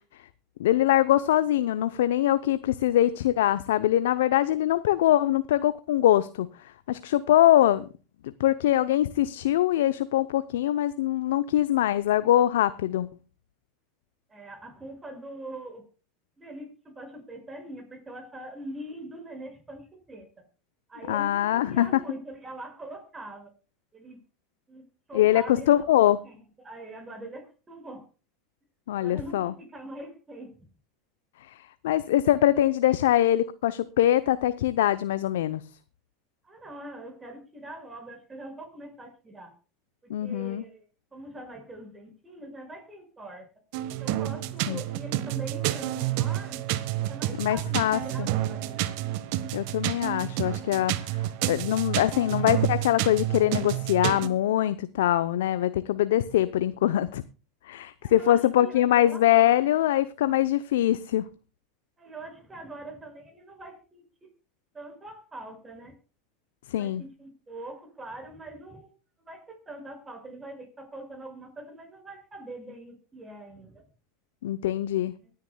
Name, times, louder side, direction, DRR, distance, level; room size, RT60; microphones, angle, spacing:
voice 1, 0.6-6.5 6.9-7.9 8.4-13.1 21.1-22.0 25.1-26.2 28.9-29.5 31.5-35.6 40.1-40.6 44.7-44.8 47.4-48.3 49.5-50.9 51.5-57.2 57.7-61.2 66.7-67.0 74.4-75.1, left 12 dB, 75° left, 13 dB, 0.6 m, -23 dB
voice 2, 14.3-15.8 16.4-20.4 20.9-23.5 23.9-24.2 24.7-28.0 28.9-30.5 32.1-32.2 36.4-39.5 40.0-40.8 41.1-43.5 44.0-46.6 47.1-48.9 58.0-59.5 62.0-64.3 64.7-65.9 66.8-68.9 69.2-73.8 75.2-75.3, right 1 dB, 20° right, 5 dB, 5.8 m, -43 dB
sound 1, 43.7-54.3, right 14 dB, 60° right, 1.1 m, -29 dB
23.5 x 9.5 x 2.2 m, 0.34 s
hypercardioid pair, 95°, 0 cm